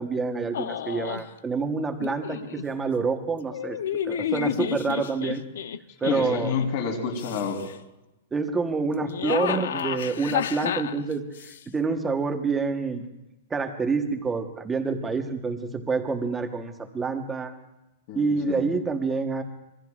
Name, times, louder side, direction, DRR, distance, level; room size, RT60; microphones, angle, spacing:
voice 1, 0.0-3.8 4.1-5.4 6.0-6.5 8.3-11.2 11.7-13.0 13.5-17.5 18.1-19.4, right 4 dB, 10° right, 5 dB, 1.1 m, -27 dB
sound 1, 0.5-1.3 2.0-2.6 3.5-6.7 7.1-7.7 8.9-11.6, left 9 dB, 80° left, 0.7 m, -31 dB
voice 2, 6.1-7.6 18.1-18.7, left 6 dB, 45° left, 1 dB, 3.5 m, -29 dB
26.0 x 21.5 x 2.4 m, 0.95 s
supercardioid pair, 170°, 0 cm